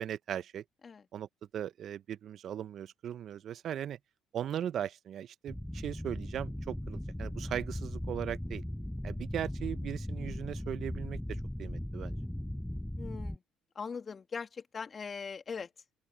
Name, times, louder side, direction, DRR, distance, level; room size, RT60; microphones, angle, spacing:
voice 1, 0.0-0.6 1.1-4.0 4.3-8.6 9.0-12.2, right 10 dB, 60° right, 0.7 m, -38 dB
sound 1, 5.5-13.4, left 1 dB, 5° left, 5.5 m, -38 dB
voice 2, 13.0-13.4 13.8-15.7, left 5 dB, 40° left, 2.4 m, -40 dB
hypercardioid pair, 65°, 0 cm